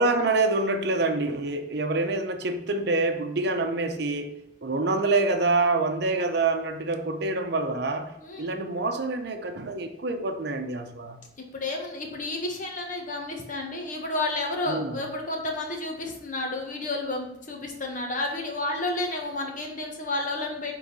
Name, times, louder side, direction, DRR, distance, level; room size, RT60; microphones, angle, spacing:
voice 1, 0.0-4.3 4.6-8.1 8.4-11.2 14.7-15.0, right 3 dB, 60° right, 6 dB, 0.8 m, -26 dB
voice 2, 8.2-8.5 11.5-20.7, left 2 dB, 45° left, 1 dB, 1.4 m, -31 dB
9.6 x 3.9 x 4.1 m, 0.84 s
head